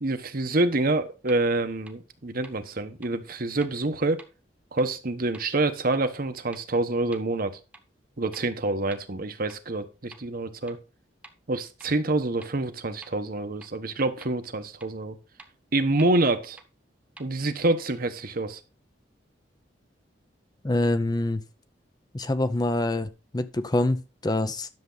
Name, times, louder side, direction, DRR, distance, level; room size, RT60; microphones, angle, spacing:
voice 1, 0.0-4.2 4.7-7.6 8.2-10.8 11.5-15.2 15.7-16.6 17.2-18.6, right 2 dB, 55° right, 1.1 m, -27 dB
sound 1, 1.3-1.4 1.9-2.0 2.4-2.5 3.0-3.1 3.6-3.7 4.2-4.3 4.8-4.9 5.3-5.4 5.9-6.0 6.5-6.6 7.1-7.2 7.7-7.8 8.3-8.4 8.9-9.0 9.5-9.6 10.1-10.2 10.7-10.8 11.2-11.3 11.8-11.9 12.4-12.5 13.0-13.1 13.6-13.7 14.2-14.3 14.8-14.9 15.4-15.5 16.0-16.1 16.6-16.7 17.2-17.3, right 2 dB, 5° right, 1.2 m, -47 dB
voice 2, 20.6-21.4 22.1-24.7, left 2 dB, 20° left, 0.6 m, -26 dB
11.0 x 6.9 x 3.9 m
head